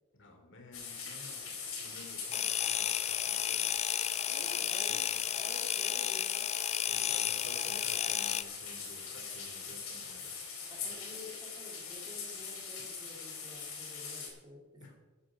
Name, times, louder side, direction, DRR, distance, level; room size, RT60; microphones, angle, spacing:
voice 1, 0.1-3.8 4.9-5.0 6.9-10.5 14.8-15.0, left 2 dB, 60° left, 3 dB, 3.1 m, -53 dB
sound 1, 0.7-14.3, left 5 dB, 85° left, 4.1 m, -42 dB
sound 2, 2.3-8.4, left 11 dB, 30° left, 0.4 m, -33 dB
voice 2, 4.3-5.0 5.3-6.5 7.6-8.3 10.7-14.6, left 1 dB, 20° right, 0 dB, 3.0 m, -51 dB
13.5 x 10.0 x 5.0 m, 1.2 s
head